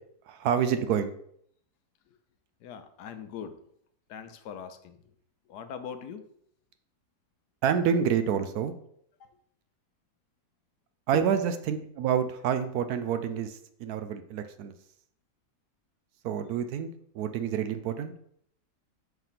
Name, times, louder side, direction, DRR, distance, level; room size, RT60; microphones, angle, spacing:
voice 1, 0.3-1.1 7.6-8.7 11.1-14.7 16.2-16.9 17.1-18.1, right 8 dB, 75° right, 9 dB, 1.0 m, -28 dB
voice 2, 2.6-3.6 4.1-5.1 5.5-6.2 9.2-9.3 11.1-11.4, left 7 dB, 80° left, 9 dB, 1.2 m, -41 dB
5.7 x 3.6 x 5.7 m, 0.68 s
omnidirectional pair, 1.8 m